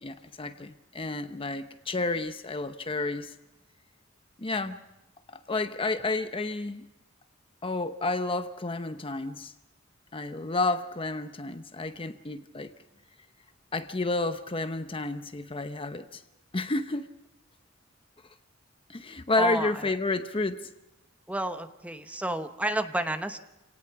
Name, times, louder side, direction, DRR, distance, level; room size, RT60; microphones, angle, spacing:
voice 1, 0.0-3.3 4.4-4.8 5.3-6.8 7.6-9.5 10.1-12.7 13.7-16.2 16.5-17.1 18.9-20.7, left 2 dB, 25° left, 9 dB, 0.8 m, -31 dB
voice 2, 19.4-19.7 21.3-23.4, right 1 dB, 5° right, 8 dB, 1.0 m, -30 dB
28.0 x 18.5 x 5.9 m, 0.97 s
head